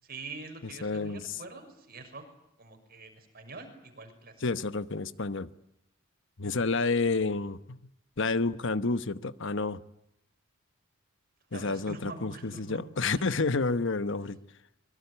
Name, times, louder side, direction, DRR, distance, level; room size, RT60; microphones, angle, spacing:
voice 1, 0.0-2.2 2.6-4.3 6.4-6.8 11.5-13.3, right 3 dB, 45° right, 6.2 m, -45 dB
voice 2, 0.8-1.2 4.4-5.5 6.4-7.8 8.2-9.8 11.5-14.4, left 3 dB, 60° left, 1.1 m, -29 dB
25.5 x 23.0 x 9.7 m
head